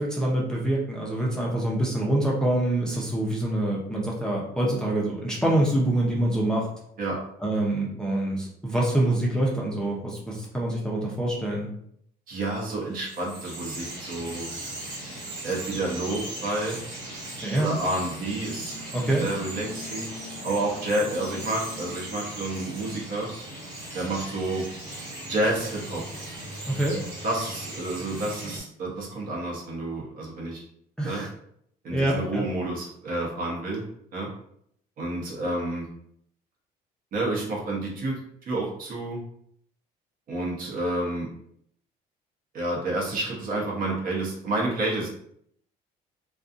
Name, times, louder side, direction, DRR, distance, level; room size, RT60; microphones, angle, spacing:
voice 1, 0.0-6.7 7.4-11.7 17.4-17.8 18.9-19.3 26.7-27.0 31.0-31.3 31.9-32.5, right 1 dB, 5° left, -4 dB, 0.6 m, -25 dB
voice 2, 12.3-14.5 15.4-16.8 17.5-18.7 19.2-20.1 20.4-23.3 23.9-24.7 25.3-26.0 27.2-30.6 31.0-31.2 31.8-33.8 34.1-34.3 35.0-35.9 37.1-38.2 38.5-39.2 40.3-41.3 42.5-45.1, right 2 dB, 55° right, -2 dB, 0.9 m, -29 dB
Bird vocalization bird call bird song, 12.5-28.6, right 1 dB, 85° right, 1.3 m, -38 dB
2.5 x 2.3 x 2.5 m, 0.69 s
cardioid pair, 110°, 17 cm